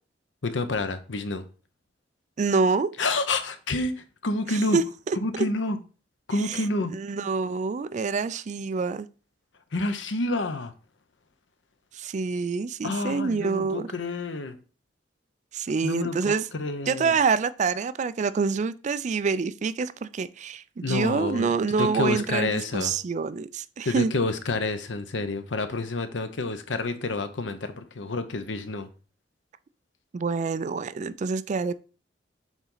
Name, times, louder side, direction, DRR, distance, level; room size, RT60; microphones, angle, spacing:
voice 1, 0.4-1.4 3.0-4.8 5.1-5.8 6.3-6.9 9.7-10.7 12.8-14.6 15.8-17.1 20.8-21.5 21.8-22.9 23.8-28.9, left 2 dB, 80° left, 0.8 m, -29 dB
voice 2, 2.4-2.9 4.7-5.5 6.5-6.6 6.9-9.1 11.9-13.9 15.5-16.5 16.9-24.1 30.1-31.8, right 4 dB, 40° right, 0.3 m, -26 dB
7.2 x 4.1 x 3.9 m
head